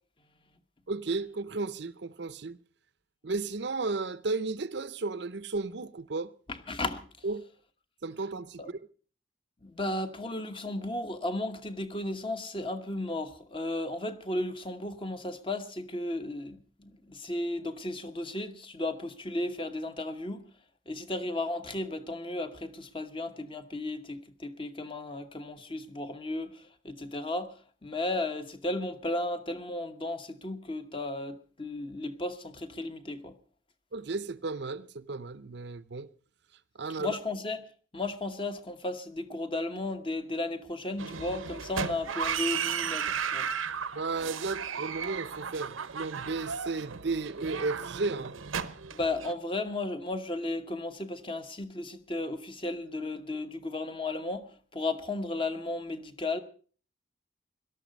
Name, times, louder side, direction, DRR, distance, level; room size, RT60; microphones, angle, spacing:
voice 1, 0.9-2.6 3.2-6.3 7.2-7.5 8.0-8.6 33.9-36.1 36.8-37.2 43.9-48.3, right 3 dB, 60° right, 0.6 m, -34 dB
voice 2, 6.5-7.0 8.6-8.7 9.6-20.5 20.9-33.4 37.0-37.6 37.9-43.5 48.9-56.4, left 2 dB, 25° left, 1.1 m, -34 dB
sound 1, 41.0-49.3, right 7 dB, 90° right, 0.9 m, -35 dB
18.0 x 12.5 x 5.3 m
head